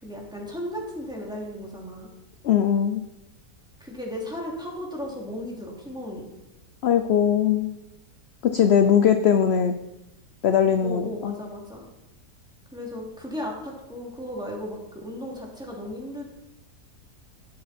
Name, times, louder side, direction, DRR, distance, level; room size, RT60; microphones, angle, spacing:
voice 1, 0.0-2.1 3.8-6.3 10.8-11.8 12.7-16.2, equal, 5° right, -3 dB, 2.8 m, -35 dB
voice 2, 2.4-3.0 6.8-7.7 8.4-9.7 10.4-11.3, left 8 dB, 55° left, 8 dB, 0.8 m, -20 dB
17.0 x 7.7 x 4.4 m, 0.95 s
omnidirectional pair, 1.7 m